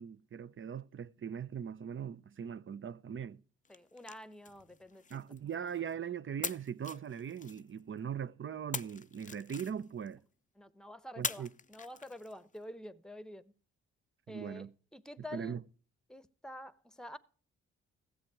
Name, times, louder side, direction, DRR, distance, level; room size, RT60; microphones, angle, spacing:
voice 1, 0.0-3.4 5.1-10.2 11.2-11.5 14.3-14.7 15.3-15.6, right 8 dB, 40° right, 0.7 m, -40 dB
sound 1, 3.6-5.9 6.4-8.0 8.7-10.1 11.2-12.6, left 5 dB, 25° left, 0.6 m, -43 dB
voice 2, 3.7-5.2 10.6-13.5 14.3-14.7 14.9-15.6 16.1-17.2, left 1 dB, ahead, 1.0 m, -48 dB
15.0 x 7.8 x 4.7 m
supercardioid pair, 45°, 30 cm